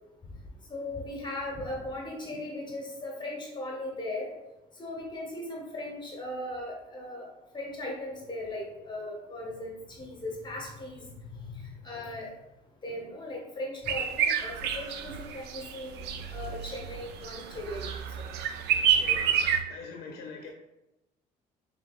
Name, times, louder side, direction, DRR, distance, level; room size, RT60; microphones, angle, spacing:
voice 1, 0.7-4.3 4.8-7.3 7.5-11.0 11.3-12.3 12.8-16.0 16.3-17.8, left 1 dB, 25° left, -1 dB, 1.1 m, -38 dB
sound 1, 13.9-19.6, right 8 dB, 80° right, 0.5 m, -29 dB
voice 2, 18.7-19.4 19.7-20.5, left 5 dB, 70° left, 2 dB, 0.6 m, -43 dB
5.2 x 3.4 x 2.4 m, 0.97 s
cardioid pair, 110°, 17 cm